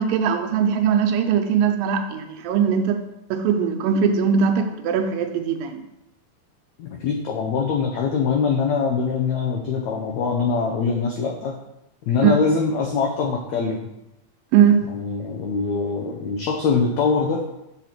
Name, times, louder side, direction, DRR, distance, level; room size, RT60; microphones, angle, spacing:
voice 1, 0.0-3.0 3.3-5.8 12.2-12.4 14.5-14.8, right 7 dB, 80° right, 6 dB, 2.3 m, -20 dB
voice 2, 6.8-11.5 12.0-13.9 14.9-17.4, left 5 dB, 85° left, 1 dB, 1.6 m, -23 dB
6.7 x 4.3 x 5.8 m, 0.87 s
omnidirectional pair, 4.2 m